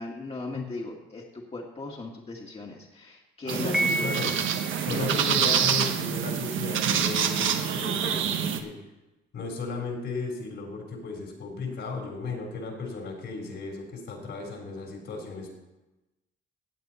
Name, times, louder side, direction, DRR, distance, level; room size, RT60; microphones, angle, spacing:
voice 1, 0.0-4.1 4.9-5.6, left 2 dB, 30° left, -1 dB, 1.7 m, -37 dB
voice 2, 3.5-4.3 4.8-8.8 9.3-15.5, left 3 dB, 70° left, 1 dB, 3.7 m, -35 dB
sound 1, 3.5-8.6, right 8 dB, 80° right, 1.1 m, -26 dB
Piano, 3.7-4.9, right 1 dB, ahead, 1.3 m, -29 dB
16.0 x 8.1 x 4.1 m, 1.0 s
cardioid pair, 90°, 20 cm